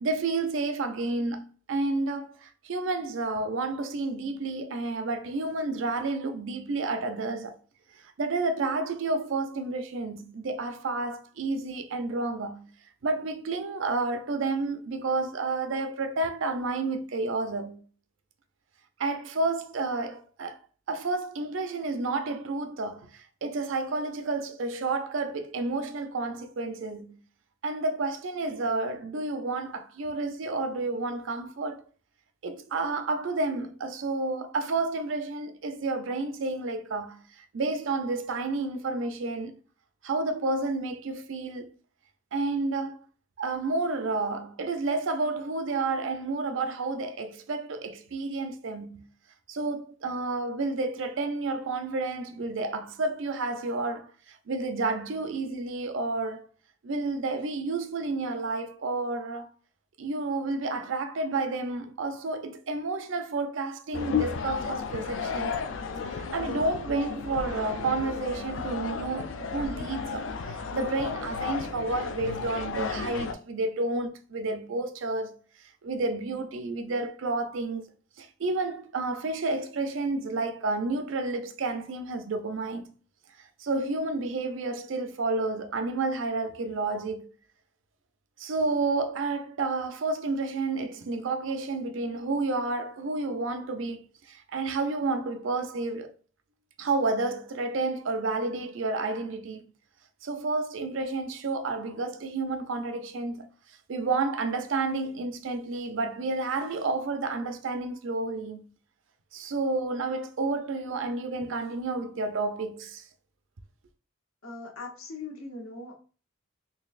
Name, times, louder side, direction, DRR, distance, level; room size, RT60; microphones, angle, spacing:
voice 1, 0.0-7.6 8.2-12.7 13.0-17.8 19.0-20.6 20.9-27.2 27.6-31.9 32.4-39.5 40.0-41.7 42.3-43.0 43.4-49.1 49.5-56.5 56.8-59.5 60.0-65.6 65.9-75.4 75.8-77.8 78.2-82.9 83.6-87.3 88.4-96.1 96.8-99.6 100.2-103.5 103.9-108.6 109.3-113.0, right 3 dB, 65° right, 0.5 m, -30 dB
sound 1, 63.9-73.3, left 5 dB, 65° left, 0.4 m, -33 dB
voice 2, 114.4-115.9, left 3 dB, 85° left, 1.0 m, -40 dB
4.0 x 3.1 x 2.4 m
head